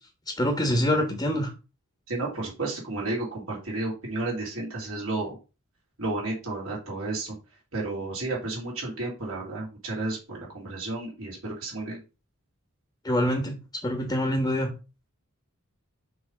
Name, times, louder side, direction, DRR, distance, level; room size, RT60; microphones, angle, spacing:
voice 1, 0.4-1.5 13.0-13.5 13.8-14.7, equal, 15° left, 3 dB, 1.2 m, -25 dB
voice 2, 2.1-5.4 6.0-7.3 7.7-12.0, right 2 dB, 70° right, -4 dB, 3.2 m, -32 dB
6.0 x 3.3 x 5.2 m, 0.31 s
head